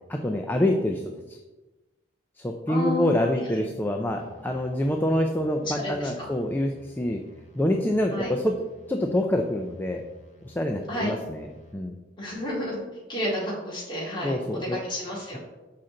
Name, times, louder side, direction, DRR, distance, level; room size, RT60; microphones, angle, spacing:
voice 1, 0.1-1.0 1.3-1.4 2.4-7.2 7.6-8.5 8.9-10.0 10.4-11.5 11.7-12.0 14.2-14.8, left 1 dB, 10° left, 3 dB, 0.4 m, -26 dB
voice 2, 2.7-3.4 5.6-6.3 8.1-8.3 10.9-11.1 12.2-12.8 13.1-15.4, left 1 dB, 25° left, -5 dB, 2.3 m, -31 dB
sound 1, 4.1-11.7, left 1 dB, 40° left, 0.9 m, -54 dB
6.4 x 5.8 x 3.8 m, 1.1 s
head